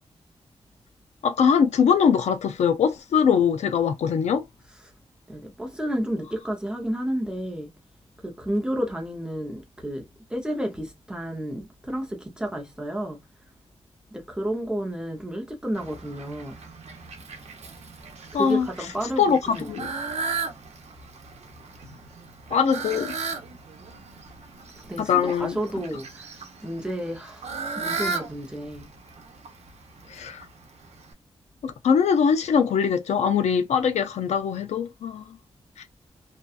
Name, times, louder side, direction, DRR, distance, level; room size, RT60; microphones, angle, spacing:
voice 1, 1.2-4.4 18.3-18.7 19.2-19.9 22.5-23.1 25.0-25.6 30.1-30.5 31.6-35.3, left 7 dB, 85° left, 0.4 m, -22 dB
voice 2, 5.3-7.7 8.2-13.2 14.1-16.6 18.3-19.8 24.8-28.9, right 1 dB, 5° right, 0.6 m, -31 dB
Fowl, 15.7-31.1, right 4 dB, 75° right, 0.7 m, -36 dB
2.7 x 2.2 x 2.3 m
wide cardioid pair, 145°, 11 cm